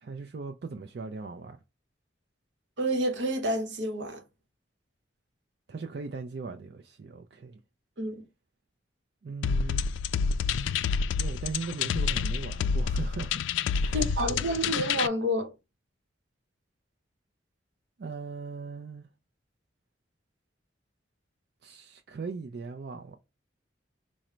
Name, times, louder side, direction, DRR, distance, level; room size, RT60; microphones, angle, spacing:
voice 1, 0.0-1.6 5.7-7.6 9.2-9.8 11.2-13.4 13.8-14.3 18.0-19.1 21.6-23.2, right 4 dB, 55° right, 0.4 m, -39 dB
voice 2, 2.8-4.2 8.0-8.2 13.9-15.5, equal, 75° right, 0.8 m, -29 dB
sound 1, 9.4-15.1, left 5 dB, 85° left, 0.3 m, -28 dB
4.9 x 2.1 x 4.3 m
head